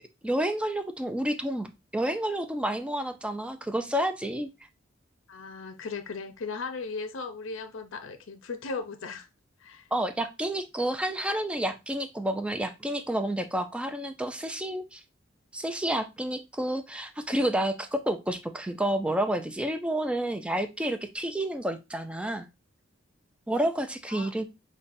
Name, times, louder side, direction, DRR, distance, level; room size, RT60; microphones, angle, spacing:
voice 1, 0.2-1.7 1.9-4.5 9.9-15.0 15.5-22.5 23.5-24.4, right 1 dB, 5° right, 0.4 m, -30 dB
voice 2, 5.3-9.3 9.6-9.9 24.1-24.3, left 4 dB, 80° left, 0.5 m, -37 dB
5.6 x 2.2 x 2.6 m
head